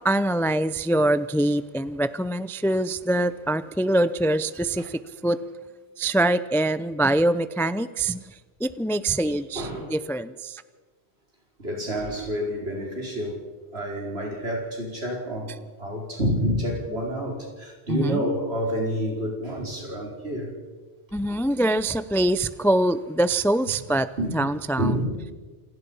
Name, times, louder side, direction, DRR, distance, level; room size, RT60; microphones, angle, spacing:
voice 1, 0.0-5.4 6.0-8.3 8.6-10.6 17.9-18.2 21.1-24.1 24.3-24.9, right 1 dB, 5° left, 14 dB, 0.4 m, -24 dB
voice 2, 9.5-9.9 11.6-13.5 13.7-20.5 24.2-24.4 24.8-25.3, equal, 65° right, 0 dB, 5.5 m, -28 dB
28.0 x 18.5 x 5.6 m, 1.3 s
omnidirectional pair, 1.1 m